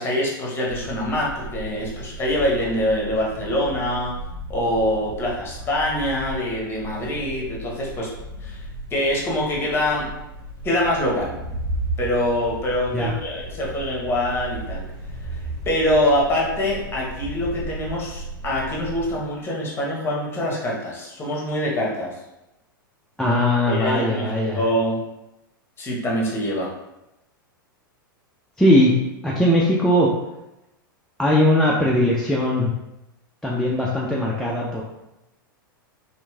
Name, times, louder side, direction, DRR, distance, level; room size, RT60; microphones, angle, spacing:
voice 1, 0.0-4.2 4.5-8.1 8.4-8.6 8.9-10.1 10.6-11.3 12.0-14.8 15.2-22.1 23.7-24.3 24.5-25.0 25.8-26.7, left 1 dB, 20° left, -3 dB, 0.9 m, -24 dB
sound 1, 0.7-19.2, right 1 dB, 50° right, 0.6 m, -35 dB
voice 2, 23.2-24.6 28.6-28.9 29.2-30.1 31.2-32.7 33.4-34.8, left 1 dB, 5° left, -5 dB, 0.3 m, -19 dB
2.9 x 2.5 x 2.3 m, 0.91 s
hypercardioid pair, 100°, 12 cm